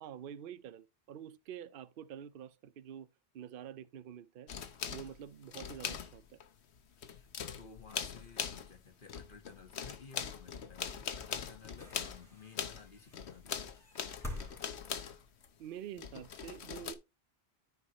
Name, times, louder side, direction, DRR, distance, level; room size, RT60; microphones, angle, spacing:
voice 1, 0.0-3.1 3.3-4.5 4.9-6.4 15.6-17.0, right 9 dB, 60° right, 0.7 m, -47 dB
sound 1, 4.5-6.5 6.8-8.8 9.1-15.5 16.0-16.9, left 7 dB, 90° left, 1.1 m, -41 dB
voice 2, 7.1-13.7, left 5 dB, 55° left, 1.5 m, -55 dB
sound 2, 11.6-15.8 16.8-16.9, left 1 dB, 5° left, 3.6 m, -48 dB
13.5 x 4.7 x 2.9 m
omnidirectional pair, 1.1 m